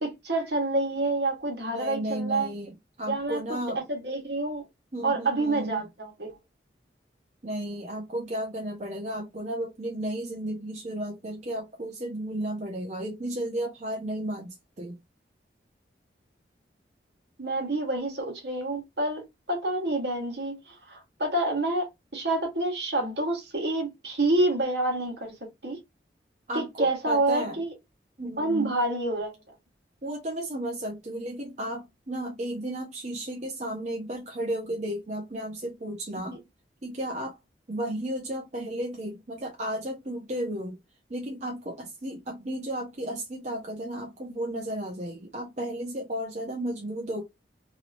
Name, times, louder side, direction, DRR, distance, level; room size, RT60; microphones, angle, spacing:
voice 1, 0.0-2.5 3.1-3.4 3.7-4.6 5.0-6.4 17.4-25.8 26.5-27.7 28.4-29.3, right 2 dB, 70° right, 1.3 m, -28 dB
voice 2, 1.7-3.8 4.9-5.8 7.4-14.9 26.5-27.6 28.2-28.7 30.0-36.4 36.8-37.4 37.7-40.8 41.1-47.2, right 1 dB, 40° right, 0.6 m, -33 dB
3.0 x 2.8 x 2.5 m
head